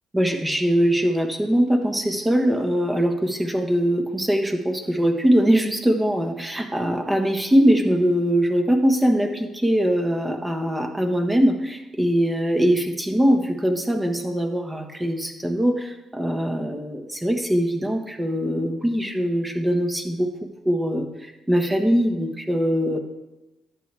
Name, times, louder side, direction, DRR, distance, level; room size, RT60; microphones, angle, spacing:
voice 1, 0.1-20.3 20.6-23.0, equal, 15° right, 5 dB, 1.4 m, -22 dB
11.0 x 8.2 x 3.5 m, 1.0 s
cardioid pair, 90°, 0 cm